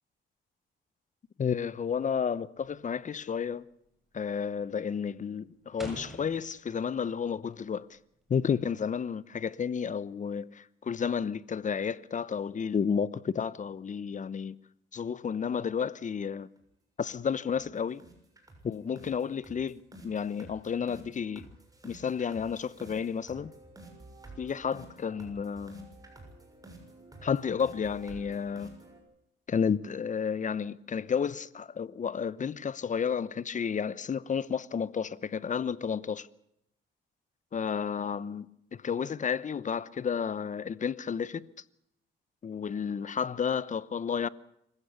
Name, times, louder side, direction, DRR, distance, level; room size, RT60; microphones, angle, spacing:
voice 1, 1.4-3.6 4.1-8.0 8.3-14.6 14.9-16.5 17.0-18.0 18.6-21.5 21.8-23.5 24.4-26.0 27.2-28.8 29.5-36.3 37.5-41.5 42.4-44.3, left 6 dB, 40° left, 0.9 m, -31 dB
sound 1, 2.6-3.0 3.2-3.6 3.9-4.4 4.7-7.0 7.4-8.8, equal, ahead, 7.0 m, -46 dB
sound 2, 16.6-16.7 17.0-17.2 17.5-17.7 18.0-29.0, right 2 dB, 20° right, 6.9 m, -51 dB
25.5 x 15.0 x 8.3 m
cardioid pair, 90°, 20 cm